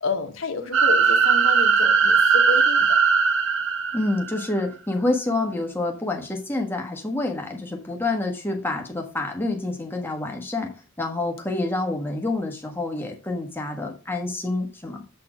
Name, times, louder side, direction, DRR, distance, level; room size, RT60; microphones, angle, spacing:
voice 1, 0.0-2.9, left 4 dB, 70° left, 1.3 m, -30 dB
sound 1, 0.7-4.5, right 6 dB, 65° right, 0.8 m, -19 dB
voice 2, 3.9-10.7 11.0-15.0, left 2 dB, 10° left, 1.3 m, -27 dB
7.6 x 4.3 x 4.9 m
head